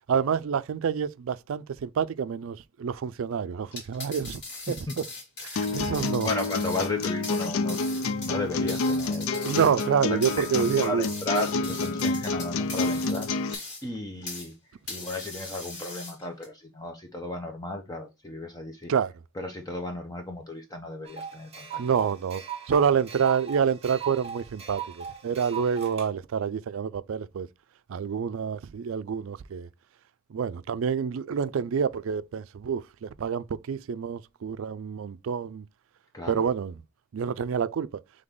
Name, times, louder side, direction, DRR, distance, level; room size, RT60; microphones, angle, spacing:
voice 1, 0.1-4.4 4.7-5.1 5.4-6.3 9.4-11.0 18.9-19.1 21.8-27.5 27.9-29.7 30.3-35.7 36.3-36.8 37.1-38.0, right 7 dB, 80° right, 0.4 m, -27 dB
sound 1, 3.6-14.5 14.9-16.5, left 2 dB, 55° left, 2.2 m, -40 dB
sound 2, 5.6-13.5, left 3 dB, 85° left, 0.4 m, -29 dB
voice 2, 6.2-9.3 10.1-14.5 14.9-18.9 19.4-21.8 36.1-36.5, left 2 dB, 20° left, 0.6 m, -35 dB
sound 3, 21.1-26.1, right 8 dB, 30° right, 1.1 m, -39 dB
3.9 x 3.4 x 3.6 m
head